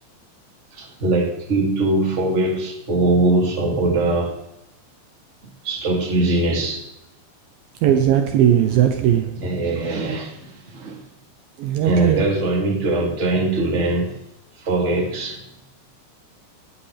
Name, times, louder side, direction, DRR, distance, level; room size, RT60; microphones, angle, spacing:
voice 1, 0.7-4.4 5.6-6.8 9.4-11.0 11.8-14.1 14.6-15.4, right 2 dB, 25° right, 1.7 m, -21 dB
voice 2, 7.8-9.4 11.6-12.2, right 10 dB, 90° right, 2.0 m, -18 dB
17.0 x 11.5 x 3.4 m
omnidirectional pair, 5.3 m